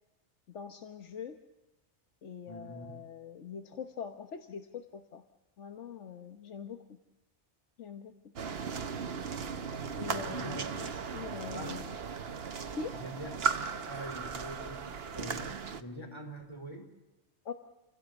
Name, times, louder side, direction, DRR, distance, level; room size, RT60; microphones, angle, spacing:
voice 1, 0.5-1.4 2.2-5.2 5.6-7.0 7.8-8.3 10.0-12.0 12.7-12.9 17.4-17.5, left 6 dB, 90° left, 6 dB, 1.5 m, -43 dB
voice 2, 2.5-3.0 10.1-10.8 11.3-11.8 12.9-16.9, right 1 dB, 25° left, 3 dB, 4.3 m, -44 dB
sound 1, 8.4-15.8, right 5 dB, 60° right, 1.2 m, -37 dB
28.5 x 16.5 x 8.2 m, 1.1 s
omnidirectional pair, 1.2 m